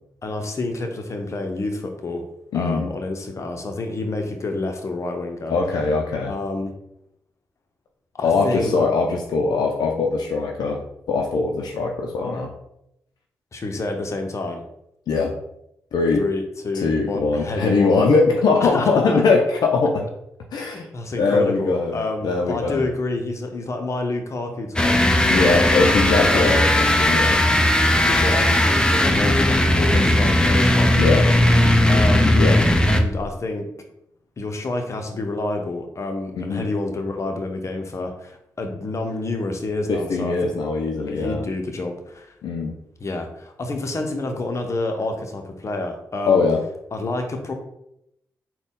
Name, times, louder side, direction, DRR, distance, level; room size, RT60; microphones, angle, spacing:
voice 1, 0.2-2.2 2.5-5.6 6.3-6.7 8.1-8.8 13.5-14.6 16.2-18.1 18.6-19.3 20.9-25.0 25.3-25.9 26.2-26.6 28.1-31.2 31.9-32.4 32.9-33.7 34.4-40.5 41.1-42.3 43.0-46.4 46.9-47.5, left 2 dB, 45° left, 5 dB, 0.7 m, -28 dB
voice 2, 2.5-2.8 5.5-6.3 8.2-10.8 11.1-12.5 15.1-15.3 15.9-16.2 16.8-20.1 20.5-20.9 21.2-22.9 25.3-27.4 31.0-31.2 32.3-32.6 36.4-36.6 39.9-41.4 42.4-42.7 46.3-46.6, left 4 dB, 75° left, 1 dB, 0.5 m, -21 dB
sound 1, 24.8-33.3, left 1 dB, 10° left, 0.5 m, -17 dB
4.0 x 2.2 x 3.7 m, 0.80 s
supercardioid pair, 50°, 7 cm